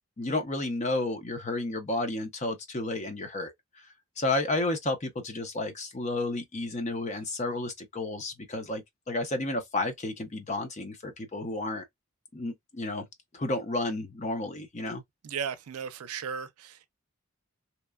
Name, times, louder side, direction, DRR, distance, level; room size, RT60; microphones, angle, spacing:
voice 1, 0.2-3.5 4.2-11.8 12.3-13.0 13.3-15.0, left 2 dB, 30° left, 0.6 m, -31 dB
voice 2, 15.2-16.9, right 7 dB, 90° right, 0.5 m, -36 dB
2.9 x 2.2 x 2.2 m
head